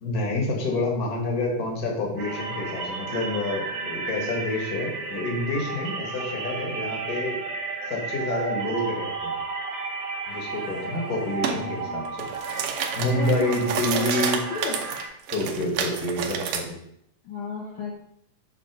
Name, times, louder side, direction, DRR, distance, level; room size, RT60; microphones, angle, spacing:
voice 1, 0.0-7.4 7.9-9.4 10.3-12.2 13.0-14.4 15.3-16.7, left 2 dB, 40° left, 0 dB, 1.5 m, -28 dB
sound 1, 2.2-15.1, right 4 dB, 55° right, 1.9 m, -33 dB
sound 2, 11.4-11.6 12.1-16.6, right 7 dB, 75° right, 2.3 m, -30 dB
voice 2, 11.5-12.1 13.0-13.6 13.9-14.8 17.2-17.9, left 5 dB, 70° left, -3 dB, 1.3 m, -34 dB
7.3 x 4.3 x 6.0 m, 0.74 s
omnidirectional pair, 3.8 m